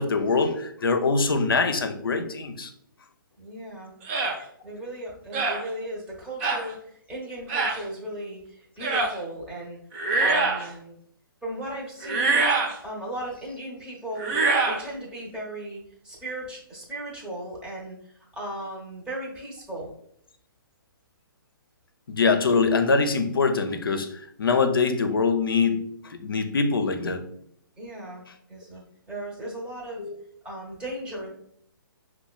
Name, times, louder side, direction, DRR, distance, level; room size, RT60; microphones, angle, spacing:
voice 1, 0.0-2.7 22.1-27.2 30.0-30.1, left 4 dB, 75° left, 8 dB, 0.5 m, -24 dB
voice 2, 3.4-3.9 4.6-11.0 11.4-12.4 12.8-14.3 14.6-19.9 27.8-28.2 28.5-28.8 29.1-30.1 30.4-31.3, right 1 dB, 10° right, -5 dB, 0.9 m, -36 dB
sound 1, 4.1-4.4 5.3-5.6 6.4-6.6 7.5-7.8 8.8-9.1 9.9-10.7 12.0-12.7 14.2-14.8, right 3 dB, 35° right, 0.6 m, -24 dB
5.4 x 2.2 x 2.3 m, 0.69 s
figure-of-eight pair, 130°, 12 cm